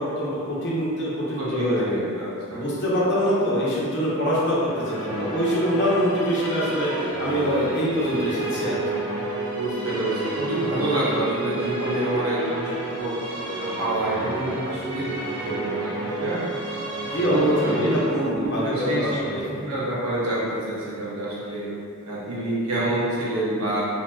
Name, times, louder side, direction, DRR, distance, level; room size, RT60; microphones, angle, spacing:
voice 1, 0.0-1.9 2.5-6.9 7.2-8.8 17.0-19.4, equal, 55° left, -6 dB, 0.6 m, -24 dB
voice 2, 1.4-2.6 9.6-13.1 13.6-16.5 17.3-18.0 18.3-21.6 22.0-23.9, right 1 dB, 75° right, -8 dB, 0.8 m, -27 dB
Musical instrument, 4.5-20.0, right 2 dB, 20° right, 0.8 m, -31 dB
2.7 x 2.7 x 2.3 m, 2.4 s
head